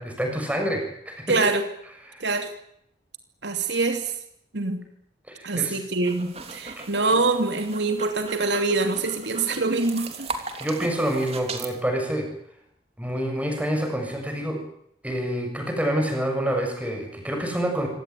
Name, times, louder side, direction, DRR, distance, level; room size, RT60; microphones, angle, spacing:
voice 1, 0.0-1.4 2.1-2.3 5.3-5.8 6.8-6.9 10.6-12.3 13.0-14.6 15.0-17.9, right 1 dB, 10° right, 3 dB, 7.1 m, -27 dB
voice 2, 1.3-1.6 2.2-2.5 3.4-4.1 4.5-4.8 5.4-10.3, right 3 dB, 75° right, 6 dB, 2.9 m, -24 dB
sound 1, 5.9-11.7, right 4 dB, 35° right, 3.1 m, -38 dB
25.5 x 18.0 x 9.7 m, 0.72 s
head